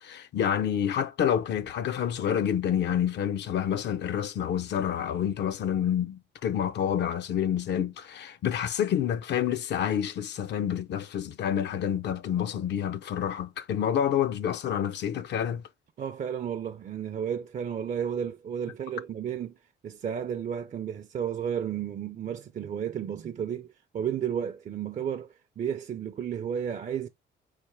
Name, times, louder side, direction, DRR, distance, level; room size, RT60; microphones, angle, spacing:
voice 1, 0.0-15.6, left 9 dB, 60° left, 0.5 m, -28 dB
voice 2, 16.0-19.5 19.8-23.7 23.9-27.1, right 8 dB, 40° right, 0.4 m, -32 dB
4.2 x 3.3 x 3.3 m
cardioid pair, 90°, 20 cm